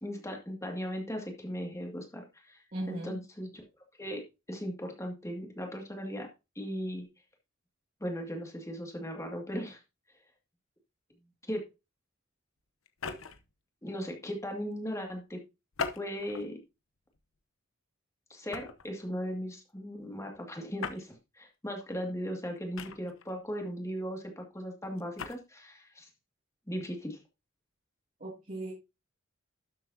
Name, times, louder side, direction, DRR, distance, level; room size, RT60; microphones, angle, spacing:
voice 1, 0.0-3.6 4.0-6.3 6.6-7.1 8.0-9.8 11.5-11.6 13.8-15.4 15.9-16.6 18.3-26.1 26.7-27.2, equal, 15° left, 2 dB, 2.3 m, -38 dB
voice 2, 2.7-3.2 28.2-28.7, right 1 dB, 40° right, -4 dB, 2.6 m, -37 dB
sound 1, 12.9-13.5 15.7-16.5 17.1-17.4 18.5-18.9 20.8-21.1 22.8-23.3 25.0-25.4, left 5 dB, 85° left, 0.9 m, -38 dB
12.0 x 7.6 x 2.8 m, 0.25 s
head